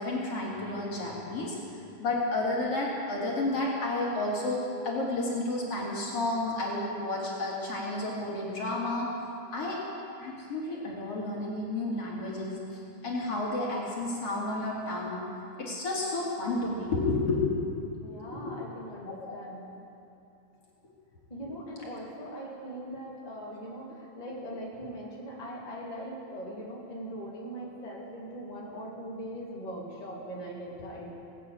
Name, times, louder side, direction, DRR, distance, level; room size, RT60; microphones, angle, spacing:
voice 1, 0.0-1.6 2.0-9.1 9.5-9.8 10.2-15.2 15.6-18.5 19.1-19.4, left 2 dB, 50° left, -4 dB, 2.9 m, -31 dB
voice 2, 18.0-19.6 21.3-31.2, equal, 15° left, -5 dB, 2.0 m, -40 dB
18.5 x 8.4 x 8.4 m, 2.7 s
omnidirectional pair, 3.8 m